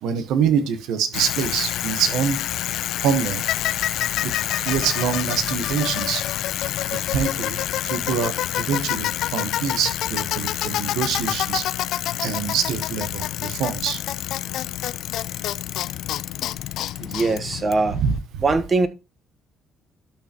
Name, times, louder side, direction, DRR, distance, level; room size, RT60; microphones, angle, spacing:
voice 1, 0.0-2.4 3.0-3.4 4.2-4.3 4.6-6.2 6.9-7.6 7.8-11.6 12.2-14.0 18.0-18.2, right 7 dB, 80° right, 10 dB, 1.2 m, -25 dB
Bicycle, 1.1-18.2, left 13 dB, 75° left, 0.4 m, -27 dB
voice 2, 17.0-18.0 18.4-18.9, right 3 dB, 40° right, 11 dB, 1.1 m, -21 dB
12.0 x 6.0 x 2.9 m, 0.26 s
supercardioid pair, 75°, 0 cm